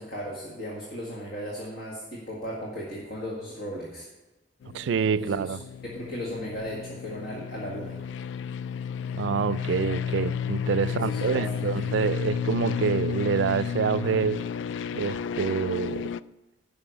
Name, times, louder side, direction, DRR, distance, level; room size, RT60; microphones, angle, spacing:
voice 1, 0.0-4.1 5.2-5.6 5.8-8.0 10.9-12.0, equal, 55° left, 1.8 m, -36 dB
sound 1, 4.6-16.2, left 7 dB, 85° left, 0.3 m, -32 dB
voice 2, 4.7-5.6 9.1-14.4 14.9-16.1, right 6 dB, 80° right, 0.3 m, -27 dB
11.5 x 5.6 x 6.9 m
head